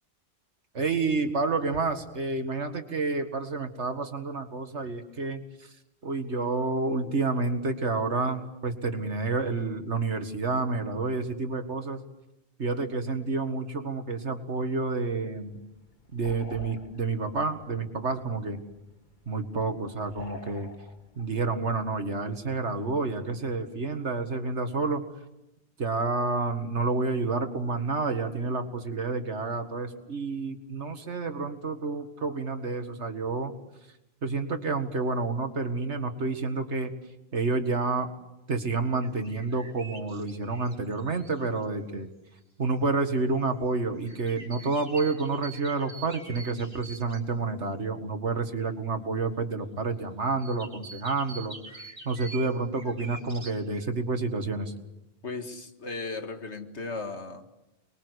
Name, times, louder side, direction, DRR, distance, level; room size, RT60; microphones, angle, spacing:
voice 1, 0.7-5.7 6.0-12.0 12.6-15.6 16.1-18.6 19.3-20.7 21.2-25.0 25.8-33.5 34.2-37.0 37.3-38.1 38.5-42.1 42.6-54.7, right 3 dB, 75° right, 7 dB, 2.2 m, -29 dB
sound 1, 15.3-23.6, left 2 dB, 45° left, 2.0 m, -51 dB
sound 2, 39.0-41.6 44.0-47.2 50.4-53.9, right 3 dB, 50° right, 4.0 m, -45 dB
voice 2, 55.2-57.5, left 3 dB, 75° left, 6 dB, 2.3 m, -36 dB
29.5 x 22.0 x 8.2 m, 0.96 s
omnidirectional pair, 1.2 m